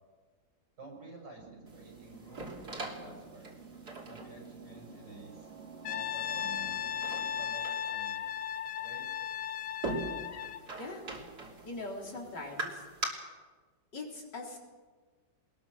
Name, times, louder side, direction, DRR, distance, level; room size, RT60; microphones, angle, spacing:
voice 1, 0.8-3.5 4.0-5.5 5.8-6.8 7.4-8.2 8.8-9.1, right 2 dB, 90° right, -1 dB, 7.7 m, -50 dB
sound 1, 1.4-7.5, right 5 dB, 40° right, 1.6 m, -51 dB
sound 2, 1.7-13.1, right 2 dB, 65° right, 3.7 m, -43 dB
Brass instrument, 5.8-10.7, left 9 dB, 55° left, 1.2 m, -36 dB
voice 2, 11.6-12.8 13.9-14.6, left 2 dB, 85° left, -1 dB, 4.3 m, -41 dB
22.0 x 20.5 x 6.3 m, 1.4 s
omnidirectional pair, 1.8 m